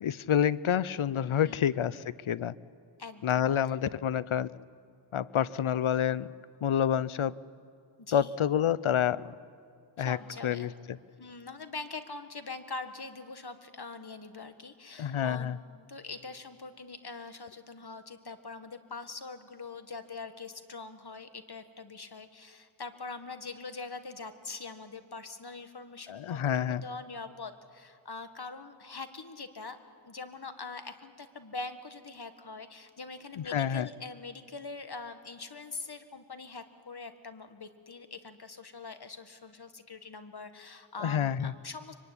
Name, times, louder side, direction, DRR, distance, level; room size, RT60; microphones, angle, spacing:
voice 1, 0.0-2.5 3.2-4.5 5.1-6.3 6.6-7.4 8.1-9.3 10.0-10.2 10.4-11.0 15.0-15.6 26.1-26.8 33.4-33.9 41.0-41.5, left 9 dB, 80° left, 18 dB, 0.7 m, -28 dB
voice 2, 1.4-1.8 3.0-3.5 8.0-8.3 10.0-10.7 11.2-15.6 15.9-29.8 30.0-41.9, left 3 dB, 50° left, 9 dB, 1.7 m, -43 dB
24.5 x 24.5 x 9.9 m, 2.3 s
wide cardioid pair, 50°, 48 cm